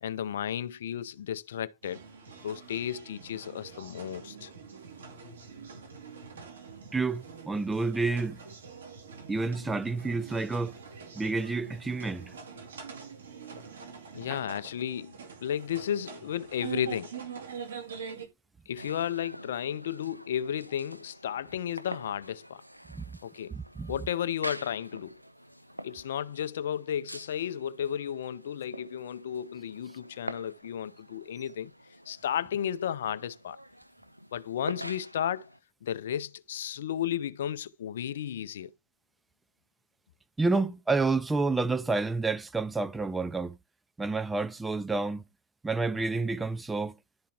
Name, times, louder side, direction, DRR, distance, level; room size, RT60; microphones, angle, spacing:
voice 1, 0.0-2.0 2.4-4.5 14.1-17.2 18.7-22.6 23.2-23.5 23.9-25.2 25.8-31.7 32.1-33.6 34.3-35.5 35.8-38.7, left 9 dB, 60° left, 0.5 m, -33 dB
sound 1, 1.8-18.3, right 6 dB, 70° right, 2.2 m, -45 dB
voice 2, 6.9-8.4 9.3-10.8 11.1-12.3 14.3-14.4 22.9-23.0 23.5-23.9 40.4-43.6 44.0-45.2 45.6-47.0, right 3 dB, 10° right, 0.5 m, -29 dB
sound 2, 18.8-35.6, equal, 90° right, 0.4 m, -46 dB
11.5 x 4.6 x 3.5 m
figure-of-eight pair, 90°, 0 cm